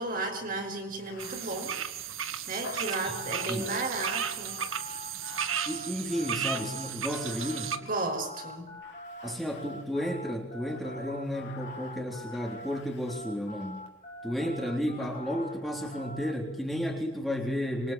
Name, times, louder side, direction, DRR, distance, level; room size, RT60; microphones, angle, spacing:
voice 1, 0.0-1.8 2.5-4.7 7.8-8.7, right 2 dB, 40° right, 3 dB, 5.7 m, -34 dB
Bathtub (filling or washing), 0.9-8.3 8.8-10.1 10.7-13.8 15.0-16.0, left 4 dB, 55° left, 4.2 m, -50 dB
sound 1, 1.2-7.8, right 9 dB, 75° right, 1.8 m, -35 dB
sound 2, 2.6-12.8 13.1-16.3, left 1 dB, 35° left, 4.0 m, -44 dB
voice 2, 5.7-7.7 9.2-13.9 14.2-17.9, equal, ahead, 0 dB, 3.7 m, -33 dB
26.5 x 24.0 x 8.9 m, 0.96 s
head